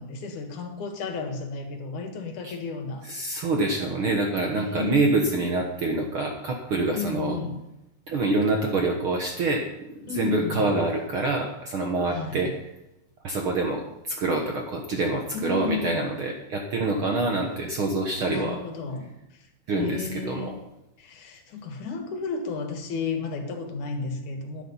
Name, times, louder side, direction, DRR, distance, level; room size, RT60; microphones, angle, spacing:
voice 1, 0.0-3.0 4.5-5.3 6.9-7.6 10.1-10.7 12.1-12.5 15.3-16.1 18.3-19.5 19.8-20.6 21.0-24.6, left 5 dB, 70° left, 4 dB, 3.0 m, -33 dB
voice 2, 3.1-7.4 8.1-9.9 10.2-12.5 13.2-18.6 19.7-20.6, right 2 dB, 60° right, 1 dB, 1.5 m, -26 dB
12.0 x 10.0 x 5.6 m, 0.88 s
omnidirectional pair, 3.8 m